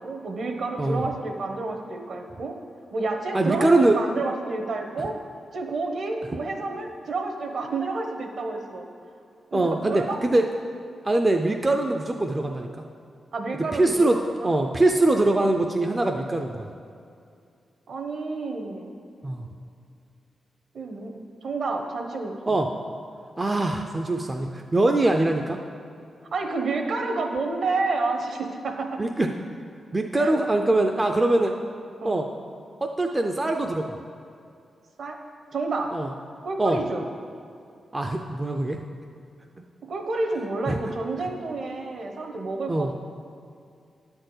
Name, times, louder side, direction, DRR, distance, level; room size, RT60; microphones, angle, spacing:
voice 1, 0.0-2.6 2.9-5.2 5.5-8.9 9.5-10.2 13.3-14.5 17.9-18.9 20.7-21.1 21.4-22.6 26.3-29.0 30.2-30.4 32.0-32.3 35.0-35.2 35.5-35.9 36.4-37.0 39.9-42.9, right 3 dB, 55° right, 3 dB, 1.0 m, -30 dB
voice 2, 3.3-4.0 9.5-10.5 11.0-12.7 13.8-16.7 19.2-19.4 22.5-22.7 23.4-25.6 29.0-29.3 29.9-31.5 32.0-32.3 32.8-34.0 35.9-36.1 36.6-36.8 37.9-38.8 40.7-40.8 42.7-42.9, right 2 dB, 15° right, 3 dB, 0.4 m, -22 dB
10.0 x 4.4 x 7.8 m, 2.4 s
wide cardioid pair, 180°, 0 cm